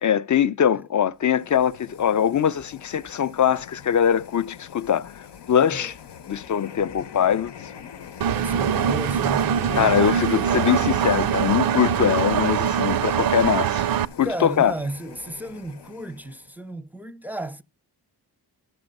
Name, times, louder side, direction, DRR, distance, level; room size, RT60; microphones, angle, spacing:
voice 1, 0.0-5.9 6.3-7.5 9.7-13.8 14.2-14.7, left 9 dB, 50° left, 0.5 m, -22 dB
sound 1, 1.2-16.6, left 8 dB, 90° left, 0.9 m, -43 dB
Engine, 8.2-14.1, right 9 dB, 60° right, 0.5 m, -23 dB
voice 2, 8.3-10.3 14.2-17.6, right 1 dB, 5° right, 0.5 m, -33 dB
12.5 x 7.0 x 5.3 m
wide cardioid pair, 160°, 40 cm